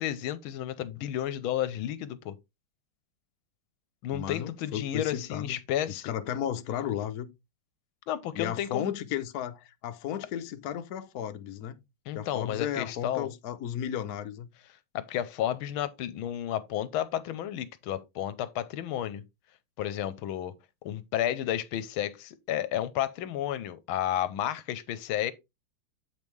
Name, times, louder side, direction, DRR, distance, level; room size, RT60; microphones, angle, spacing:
voice 1, 0.0-2.3 4.0-6.1 8.1-8.9 12.1-13.3 14.9-19.2 19.8-20.5 20.8-25.3, left 11 dB, 80° left, 1.5 m, -32 dB
voice 2, 4.1-5.6 5.9-7.3 8.3-11.8 12.1-14.5, left 10 dB, 60° left, 1.0 m, -34 dB
8.0 x 5.3 x 3.1 m
omnidirectional pair, 2.3 m